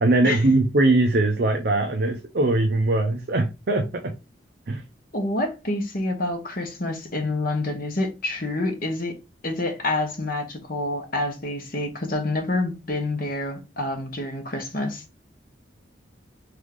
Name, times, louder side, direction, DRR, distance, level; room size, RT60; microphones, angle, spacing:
voice 1, 0.0-4.1 4.7-4.8, right 2 dB, 55° right, 0.5 m, -21 dB
voice 2, 5.1-9.1 9.4-15.0, left 2 dB, 45° left, 1.0 m, -27 dB
3.5 x 3.4 x 3.7 m
head